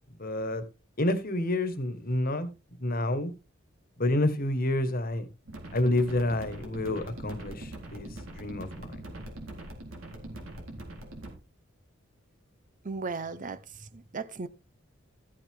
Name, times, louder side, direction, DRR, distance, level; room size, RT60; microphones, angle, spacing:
voice 1, 0.2-0.6 1.0-2.5 2.8-3.3 4.0-5.3 5.7-8.1 8.3-9.0, left 1 dB, 45° left, 1.6 m, -28 dB
sound 1, 5.5-11.3, right 1 dB, 85° right, 4.0 m, -42 dB
voice 2, 12.8-13.6 13.9-14.5, right 4 dB, 40° right, 0.7 m, -35 dB
14.0 x 7.7 x 3.7 m
head